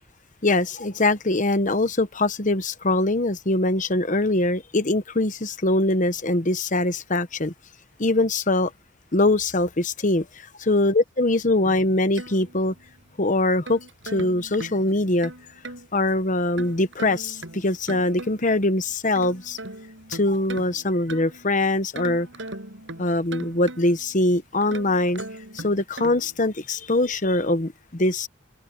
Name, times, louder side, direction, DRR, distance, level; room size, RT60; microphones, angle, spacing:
voice 1, 0.4-7.5 8.0-8.7 9.1-10.3 10.7-12.7 13.2-13.8 14.1-15.3 15.9-19.6 20.1-22.3 23.0-25.2 25.5-28.3, left 2 dB, 40° left, 1.1 m, -22 dB
sound 1, 11.7-13.0 13.4-15.9 16.6-18.6 19.0-21.5 21.9-24.1 24.6-26.4, right 2 dB, 65° right, 7.3 m, -39 dB
head